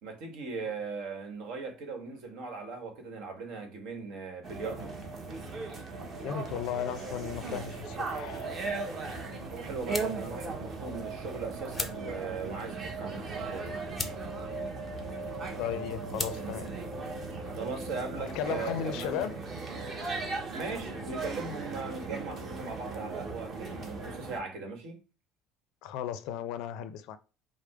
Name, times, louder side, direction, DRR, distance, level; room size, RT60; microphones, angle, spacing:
voice 1, 0.0-4.9 9.5-13.8 17.5-19.2 20.5-25.0, right 4 dB, 70° right, 1.4 m, -39 dB
sound 1, 4.4-24.4, right 3 dB, 30° right, 0.9 m, -38 dB
voice 2, 6.2-8.5 15.6-16.8 18.2-19.4 25.8-27.2, left 10 dB, 65° left, 0.5 m, -35 dB
sound 2, 7.3-17.7, left 3 dB, 10° left, 0.5 m, -44 dB
5.0 x 2.1 x 4.7 m
cardioid pair, 155°, 0 cm